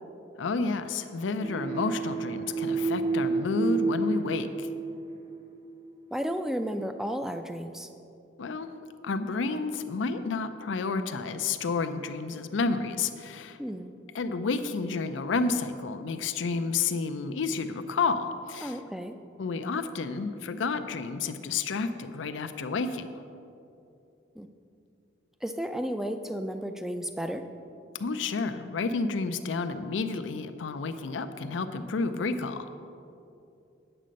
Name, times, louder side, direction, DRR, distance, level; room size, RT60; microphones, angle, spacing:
voice 1, 0.4-4.7 8.4-8.7 9.0-13.6 14.1-18.8 19.4-23.1 28.0-32.7, left 4 dB, 85° left, 9 dB, 0.5 m, -30 dB
sound 1, 1.4-5.9, right 4 dB, 35° right, 0.8 m, -30 dB
voice 2, 6.1-7.9 13.6-14.0 18.6-19.2 24.4-24.5 25.4-27.4, equal, ahead, 7 dB, 0.3 m, -33 dB
8.8 x 7.5 x 5.2 m, 2.7 s
head